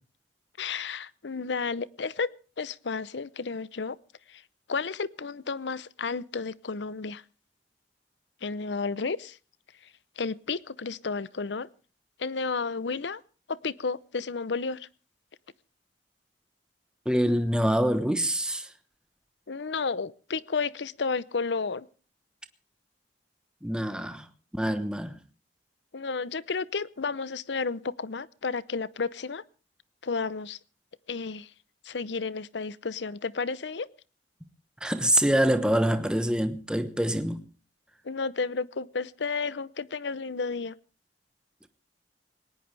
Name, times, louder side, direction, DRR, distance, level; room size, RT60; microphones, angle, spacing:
voice 1, 0.6-2.3 2.6-4.0 4.3-4.4 4.7-7.2 8.4-9.4 10.2-11.7 12.2-13.2 13.5-14.9 19.5-21.9 25.9-29.4 30.0-30.6 31.1-31.5 31.8-33.9 38.0-40.8, left 4 dB, 80° left, 0.7 m, -32 dB
voice 2, 17.0-18.7 23.6-24.3 24.5-25.2 34.8-37.4, right 1 dB, 5° right, 1.1 m, -25 dB
19.5 x 18.5 x 3.4 m
head